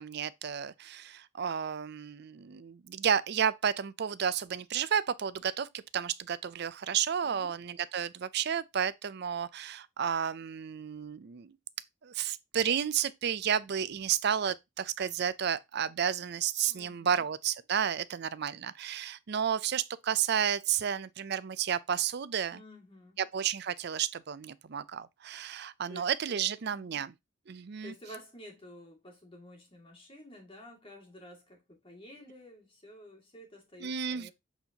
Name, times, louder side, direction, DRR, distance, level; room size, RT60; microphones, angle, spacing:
voice 1, 0.0-11.5 12.0-22.6 23.3-27.1 27.5-27.9 33.8-34.3, right 8 dB, 60° right, 0.5 m, -32 dB
voice 2, 7.2-7.6 16.7-17.2 22.5-23.2 25.9-27.1 27.8-34.3, equal, 30° left, 2.3 m, -51 dB
8.0 x 4.4 x 2.9 m
head